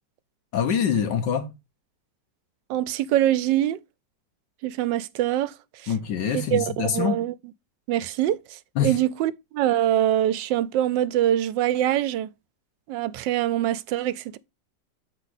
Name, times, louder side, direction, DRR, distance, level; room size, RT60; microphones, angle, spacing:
voice 1, 0.5-1.5 5.9-7.2 8.8-9.0, left 7 dB, 75° left, 1.8 m, -25 dB
voice 2, 2.7-3.8 4.6-5.5 5.8-5.9 6.3-7.3 7.9-12.3 12.9-14.4, right 12 dB, 85° right, 1.3 m, -24 dB
7.2 x 4.9 x 4.0 m
omnidirectional pair, 2.0 m